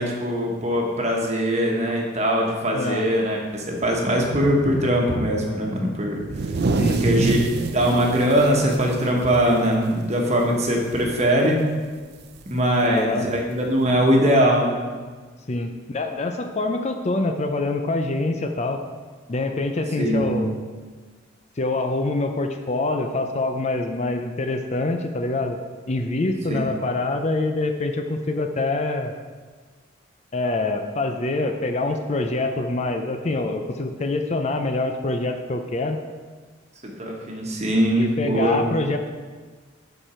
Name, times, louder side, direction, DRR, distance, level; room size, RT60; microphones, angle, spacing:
voice 1, 0.0-6.5 7.0-11.6 12.5-14.9 20.0-20.4 26.5-26.6 36.8-38.6, equal, 35° right, 0 dB, 1.3 m, -21 dB
voice 2, 2.7-3.1 6.8-7.0 12.8-13.3 15.5-18.8 19.3-20.5 21.6-25.6 25.9-29.1 30.3-36.0 38.0-39.0, left 2 dB, 35° left, 6 dB, 0.5 m, -25 dB
sound 1, 6.2-9.9 10.2-10.4 10.8-11.2 12.4-12.5 13.5-13.6, right 3 dB, 55° right, 0.5 m, -26 dB
11.5 x 4.5 x 4.4 m, 1.5 s
head